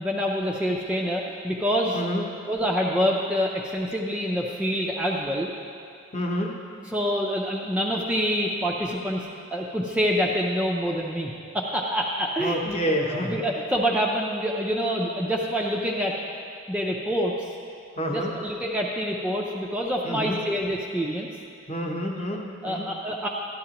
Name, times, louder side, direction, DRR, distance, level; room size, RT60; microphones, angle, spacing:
voice 1, 0.0-2.0 2.5-5.5 6.8-12.8 13.1-16.1 16.7-17.5 18.1-21.3 22.6-23.3, equal, 5° right, -2 dB, 0.4 m, -26 dB
voice 2, 1.9-2.2 6.1-6.6 12.4-13.5 18.0-18.3 20.0-20.4 21.7-22.9, equal, 30° left, 0 dB, 0.9 m, -28 dB
12.5 x 11.0 x 2.9 m, 2.5 s
head